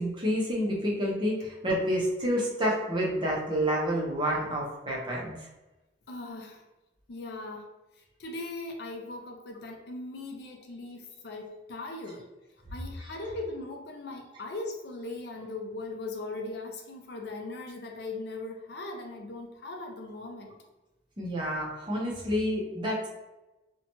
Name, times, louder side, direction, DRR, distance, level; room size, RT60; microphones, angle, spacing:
voice 1, 0.0-5.4 21.2-23.1, equal, 25° right, -4 dB, 0.6 m, -29 dB
voice 2, 6.1-6.6 7.1-12.3 12.7-20.5, left 2 dB, 60° left, 2 dB, 0.4 m, -39 dB
2.7 x 2.1 x 2.9 m, 1.0 s
head